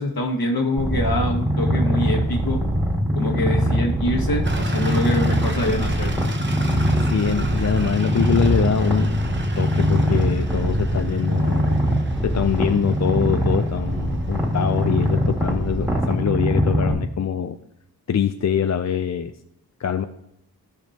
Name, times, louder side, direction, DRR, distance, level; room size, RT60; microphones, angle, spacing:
voice 1, 0.0-2.6 3.1-6.1, left 1 dB, 70° left, 1 dB, 1.8 m, -25 dB
Purr, 0.8-16.9, equal, 10° right, 2.0 m, -22 dB
sound 1, 4.4-16.2, right 3 dB, 30° right, 0.9 m, -35 dB
voice 2, 6.8-11.8 12.2-17.6 18.1-19.3 19.8-20.1, left 8 dB, 45° left, 9 dB, 0.4 m, -24 dB
15.5 x 5.2 x 2.8 m, 0.79 s
wide cardioid pair, 95°, 37 cm